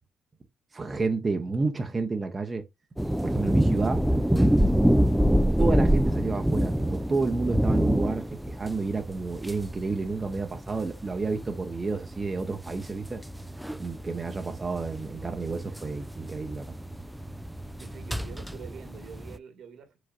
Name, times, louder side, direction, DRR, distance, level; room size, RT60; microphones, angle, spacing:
voice 1, 0.7-2.6 3.2-4.0 5.6-13.2 13.8-16.7, right 3 dB, 30° right, 0.7 m, -30 dB
sound 1, 3.0-19.4, equal, 5° right, 0.3 m, -26 dB
sound 2, 11.0-18.8, right 2 dB, 15° left, 1.1 m, -46 dB
voice 2, 17.8-20.0, right 7 dB, 70° right, 1.6 m, -45 dB
4.8 x 4.0 x 2.4 m
cardioid pair, 90°, 0 cm